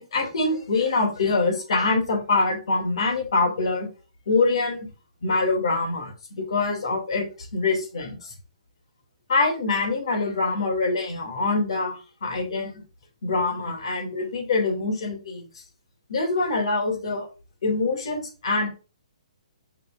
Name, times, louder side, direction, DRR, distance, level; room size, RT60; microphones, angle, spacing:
voice 1, 0.0-3.9 4.3-4.9 5.2-8.3 9.3-12.8 13.2-15.5 16.1-17.3 17.6-18.7, left 3 dB, 50° left, 1 dB, 2.6 m, -24 dB
8.2 x 4.9 x 2.6 m, 0.32 s
hypercardioid pair, 175°, 4 cm